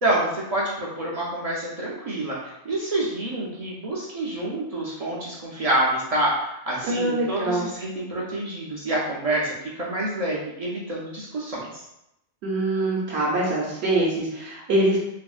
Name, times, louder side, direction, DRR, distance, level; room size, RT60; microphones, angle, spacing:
voice 1, 0.0-11.8, right 1 dB, 55° right, -5 dB, 0.4 m, -27 dB
voice 2, 6.8-7.7 12.4-15.0, right 1 dB, 70° right, -5 dB, 0.9 m, -24 dB
2.8 x 2.6 x 2.3 m, 0.86 s
omnidirectional pair, 1.1 m